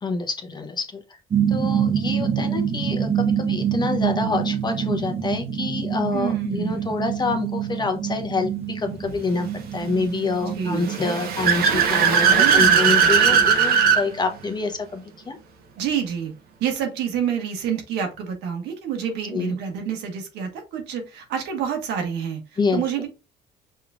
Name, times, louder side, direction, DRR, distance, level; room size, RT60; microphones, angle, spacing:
voice 1, 0.0-1.0 1.5-15.4 19.3-19.6 22.6-22.8, left 3 dB, 25° left, 5 dB, 1.0 m, -27 dB
sound 1, 1.3-14.2, right 8 dB, 35° right, 0.8 m, -27 dB
voice 2, 6.1-6.9 10.5-11.0 12.2-13.2 15.8-16.3 16.6-23.1, right 8 dB, 85° right, 4 dB, 1.5 m, -28 dB
Car / Accelerating revving vroom, 10.8-14.0, right 7 dB, 65° right, 1.0 m, -18 dB
5.6 x 3.1 x 2.4 m, 0.28 s
cardioid pair, 110°, 17 cm